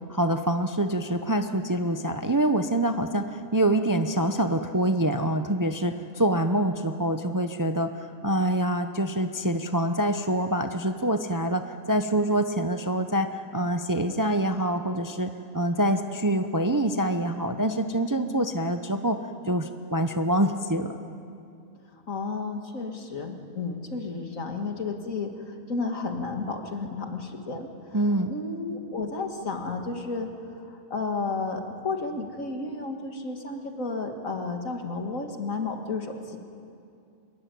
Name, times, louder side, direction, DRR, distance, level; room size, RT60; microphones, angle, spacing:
voice 1, 0.1-19.2 19.5-21.0 27.9-28.3, right 1 dB, 20° right, 7 dB, 0.6 m, -25 dB
voice 2, 22.1-27.7 28.3-36.4, left 3 dB, 65° left, 4 dB, 2.4 m, -32 dB
24.0 x 22.0 x 9.4 m, 2.5 s
omnidirectional pair, 1.5 m